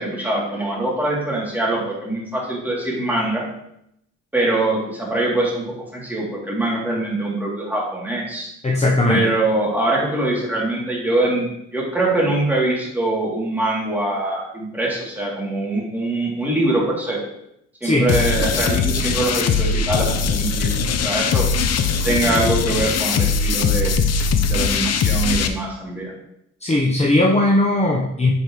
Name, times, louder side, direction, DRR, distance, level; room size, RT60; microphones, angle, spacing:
voice 1, 0.0-3.4 4.3-5.6 5.9-8.5 9.1-17.2 17.8-21.5 22.0-23.9 24.5-26.1, right 2 dB, 5° right, -5 dB, 3.0 m, -23 dB
voice 2, 8.6-9.3 17.8-18.1 26.6-28.3, left 1 dB, 20° left, -3 dB, 1.1 m, -18 dB
sound 1, 18.1-25.5, left 5 dB, 55° left, 0.8 m, -20 dB
9.6 x 5.2 x 3.2 m, 0.79 s
cardioid pair, 90°, 30 cm